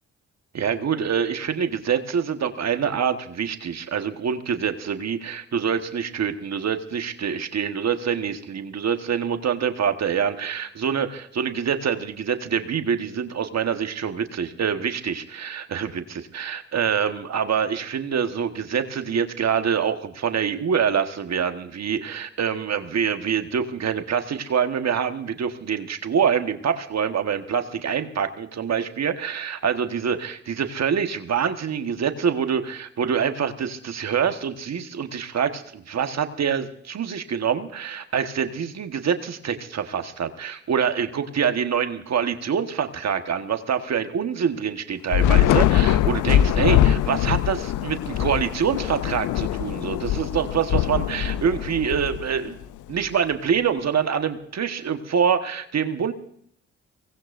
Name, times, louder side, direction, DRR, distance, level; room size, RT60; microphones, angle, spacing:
voice 1, 0.5-52.6 52.9-56.1, right 7 dB, 60° right, 8 dB, 1.4 m, -25 dB
Thunder / Rain, 45.1-52.6, left 12 dB, 80° left, 0.6 m, -22 dB
23.5 x 18.5 x 2.6 m, 0.66 s
supercardioid pair, 50°, 30 cm